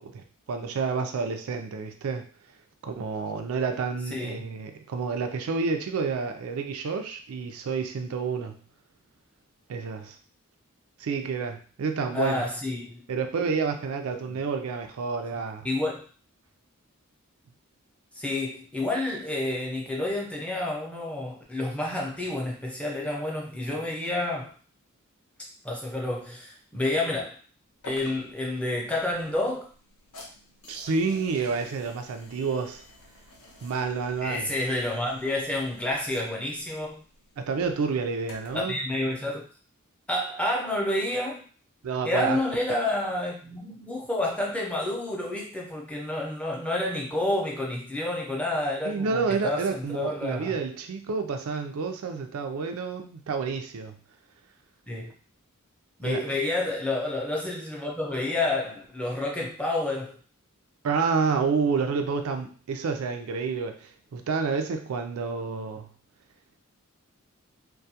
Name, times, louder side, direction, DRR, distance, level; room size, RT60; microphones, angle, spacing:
voice 1, 0.0-2.3 2.8-8.6 9.7-10.2 11.0-12.5 13.1-15.7 30.7-32.8 33.6-34.5 37.4-38.8 41.8-42.4 48.8-54.0 56.0-56.4 60.8-65.9, right 5 dB, 85° right, 6 dB, 0.4 m, -29 dB
voice 2, 4.1-4.5 12.1-13.1 14.3-14.4 15.6-16.1 18.2-24.5 25.6-27.4 27.8-29.7 34.2-37.0 38.5-39.5 40.1-41.4 42.0-50.6 54.9-55.1 56.0-60.2, left 2 dB, 5° left, -2 dB, 0.4 m, -29 dB
sound 1, 27.8-38.7, left 2 dB, 85° left, 0.7 m, -50 dB
2.2 x 2.1 x 2.7 m, 0.39 s
head